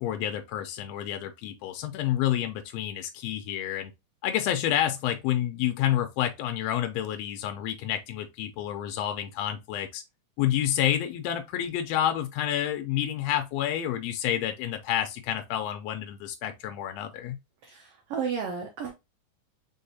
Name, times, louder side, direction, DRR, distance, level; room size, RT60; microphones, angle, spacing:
voice 1, 0.0-3.9 4.2-10.0 10.4-17.4, left 11 dB, 85° left, 1.4 m, -29 dB
voice 2, 17.6-18.9, right 6 dB, 85° right, 1.3 m, -33 dB
4.6 x 3.5 x 2.7 m
omnidirectional pair, 3.6 m